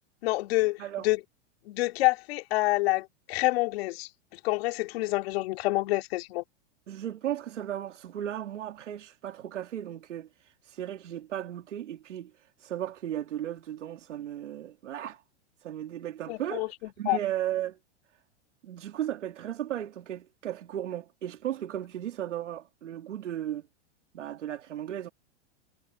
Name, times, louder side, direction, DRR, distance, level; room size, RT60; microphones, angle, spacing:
voice 1, 0.2-1.2 1.7-6.4 16.3-16.7 17.0-17.2, left 20 dB, 55° left, 2.6 m, -27 dB
voice 2, 6.9-15.2 15.6-17.8 18.6-23.7 24.1-25.1, right 11 dB, 90° right, 3.0 m, -35 dB
hypercardioid pair, 140°, 35 cm